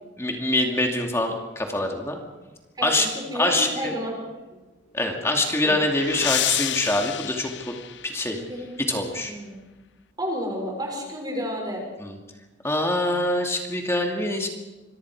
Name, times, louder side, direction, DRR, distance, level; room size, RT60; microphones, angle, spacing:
voice 1, 0.2-2.2 2.8-3.1 3.3-3.9 4.9-7.7 8.0-8.4 8.9-9.3 12.0-12.2 12.6-14.5, left 1 dB, 15° left, 1 dB, 2.5 m, -24 dB
voice 2, 2.7-4.1 5.6-5.7 8.3-9.5 10.2-11.8, equal, 20° right, 0 dB, 6.3 m, -31 dB
sound 1, 5.2-8.5, left 12 dB, 70° left, 0.7 m, -30 dB
26.5 x 23.0 x 4.9 m, 1.2 s
head